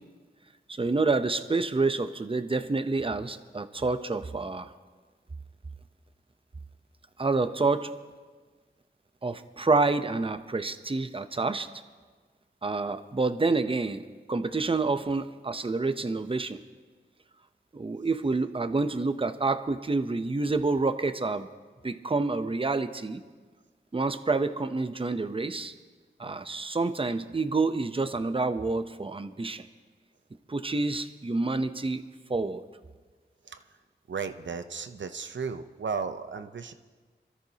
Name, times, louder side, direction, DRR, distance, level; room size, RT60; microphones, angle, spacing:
voice 1, 0.7-4.7 7.2-7.9 9.2-11.7 12.6-16.6 17.7-21.5 21.8-23.2 23.9-25.7 26.2-29.7 30.5-32.0 32.3-32.6, right 3 dB, 30° right, 10 dB, 0.8 m, -28 dB
voice 2, 34.1-36.7, right 5 dB, 75° right, 9 dB, 0.8 m, -34 dB
26.0 x 13.5 x 2.9 m, 1.4 s
wide cardioid pair, 65°, 19 cm